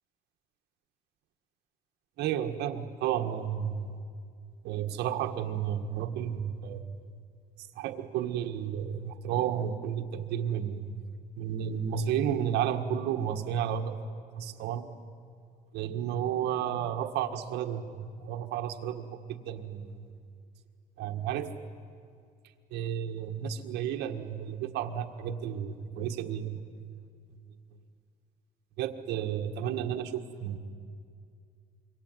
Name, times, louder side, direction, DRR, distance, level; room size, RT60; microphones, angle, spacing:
voice 1, 2.2-4.0 4.6-6.9 7.8-10.9 11.4-14.0 14.4-14.9 15.7-20.1 21.0-21.5 22.7-26.6 28.8-30.6, right 9 dB, 85° right, 5 dB, 1.8 m, -32 dB
26.5 x 24.0 x 9.3 m, 2.2 s
cardioid pair, 110°, 17 cm